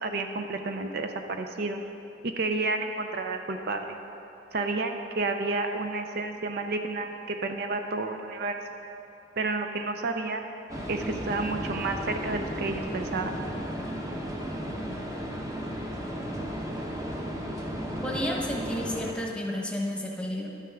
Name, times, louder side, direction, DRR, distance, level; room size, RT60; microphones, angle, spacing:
voice 1, 0.0-1.8 2.2-4.0 4.5-8.6 9.4-10.4 10.9-13.3, right 3 dB, 60° right, 6 dB, 0.5 m, -30 dB
sound 1, 10.7-19.1, equal, 20° right, 0.9 m, -34 dB
voice 2, 18.0-20.5, equal, 5° left, -2 dB, 1.1 m, -31 dB
11.5 x 9.1 x 3.6 m, 2.7 s
head